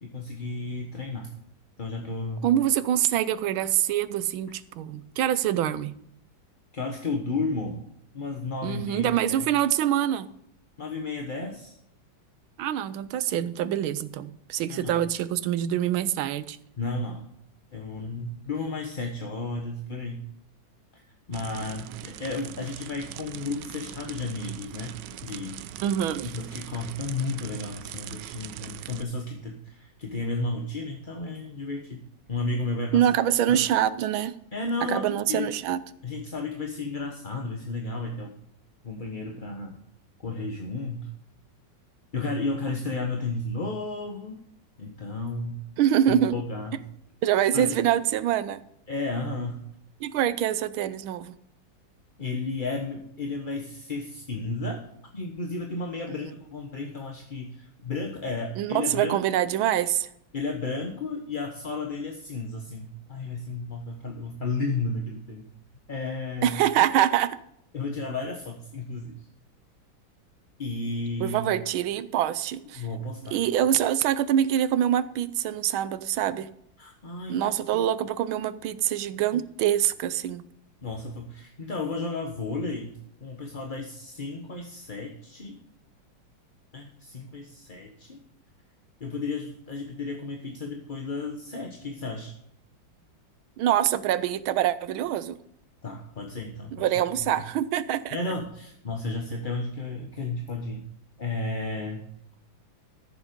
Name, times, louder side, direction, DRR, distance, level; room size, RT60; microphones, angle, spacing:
voice 1, 0.0-1.3 1.8-2.5 6.7-7.8 8.1-9.5 10.8-11.8 14.7-15.0 16.8-17.2 17.7-20.2 20.9-21.0 21.3-24.9 25.2-25.6 26.2-32.0 32.3-33.1 33.5-33.6 34.5-35.5 36.0-38.3 38.8-39.8 40.2-41.1 42.1-44.4 44.8-45.6 46.1-46.8 47.5-47.8 48.9-49.6 52.2-54.8 55.1-59.2 60.3-65.5 65.9-66.6 67.7-69.2 70.6-71.5 72.7-73.4 76.8-77.5 80.8-85.6 86.7-88.2 89.0-92.3 95.8-96.8 97.3-97.4 98.1-100.8 101.2-102.0, left 3 dB, 30° left, 2 dB, 1.1 m, -33 dB
voice 2, 2.4-5.9 8.6-10.3 12.6-16.6 25.8-26.4 32.9-34.3 34.9-35.8 45.8-46.3 47.2-48.6 50.0-51.4 58.6-60.1 66.4-67.4 71.2-72.8 73.3-76.5 77.3-80.4 93.6-95.4 96.8-98.2, right 11 dB, 90° right, 15 dB, 1.5 m, -25 dB
sound 1, 21.3-29.0, right 12 dB, 70° right, 1.1 m, -41 dB
14.0 x 7.3 x 5.2 m, 0.73 s
omnidirectional pair, 2.2 m